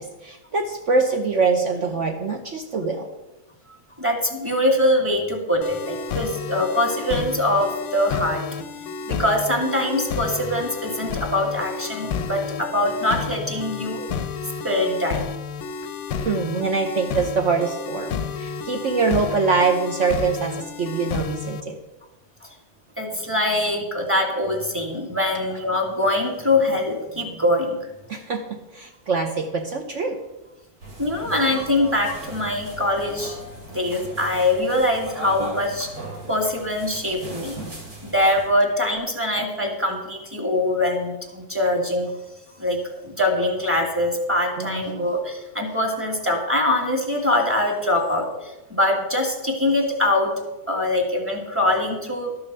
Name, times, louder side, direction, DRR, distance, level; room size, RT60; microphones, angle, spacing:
voice 1, 0.0-3.1 16.1-21.8 28.1-30.2 44.6-45.0, right 4 dB, 55° right, 3 dB, 1.2 m, -24 dB
voice 2, 4.0-8.4 9.1-14.0 14.6-15.2 23.0-27.8 31.0-33.4 33.7-35.9 36.3-37.6 38.0-42.1 42.6-50.3 50.7-52.3, left 1 dB, 10° right, 2 dB, 1.8 m, -23 dB
sound 1, 5.6-21.6, left 6 dB, 65° left, 0.8 m, -31 dB
sound 2, 30.8-38.5, right 2 dB, 75° right, 3.1 m, -38 dB
12.0 x 6.9 x 6.8 m, 1.0 s
omnidirectional pair, 1.6 m